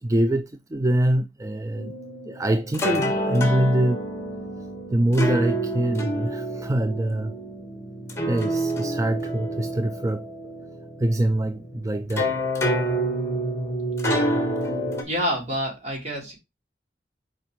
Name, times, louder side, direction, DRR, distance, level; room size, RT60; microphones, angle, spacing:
voice 1, 0.0-2.0 2.2-4.0 4.9-7.3 8.3-10.3 11.0-12.3, right 1 dB, 20° right, 0.4 m, -24 dB
sound 1, 1.7-15.0, right 1 dB, 15° left, 1.6 m, -28 dB
voice 2, 15.1-16.3, equal, 40° right, 3.5 m, -27 dB
7.1 x 5.0 x 3.2 m
head